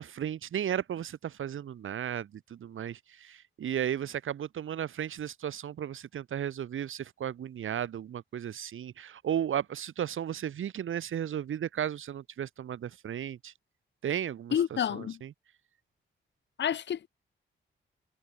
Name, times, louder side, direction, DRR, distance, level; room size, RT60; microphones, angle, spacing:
voice 1, 0.0-13.5 14.0-14.5 14.9-15.3, right 9 dB, 80° right, 1.4 m, -34 dB
voice 2, 14.5-15.2 16.6-17.1, left 9 dB, 65° left, 0.7 m, -29 dB
wide cardioid pair, 115°, 20 cm